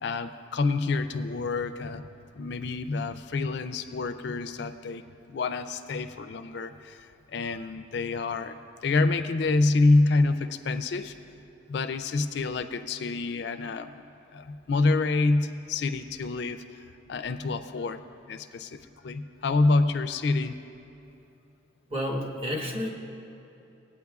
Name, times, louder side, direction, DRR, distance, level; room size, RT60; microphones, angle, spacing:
voice 1, 0.0-2.1 2.3-11.1 11.7-14.0 14.3-18.0 18.3-20.6, left 3 dB, 60° left, 10 dB, 0.4 m, -27 dB
voice 2, 21.9-22.9, equal, 30° right, -1 dB, 1.1 m, -30 dB
18.5 x 8.7 x 2.3 m, 2.9 s
head